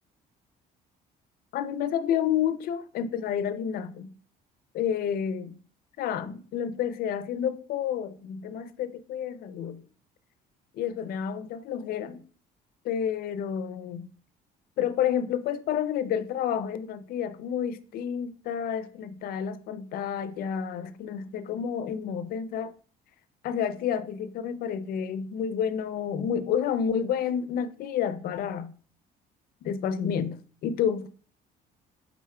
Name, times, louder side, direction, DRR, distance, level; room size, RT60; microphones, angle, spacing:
voice 1, 1.5-4.1 4.7-5.6 6.0-9.8 10.7-12.2 12.8-14.1 14.8-22.7 23.4-28.8 29.6-31.1, left 8 dB, 60° left, 0.4 m, -30 dB
4.7 x 3.7 x 2.2 m
cardioid pair, 110°, 17 cm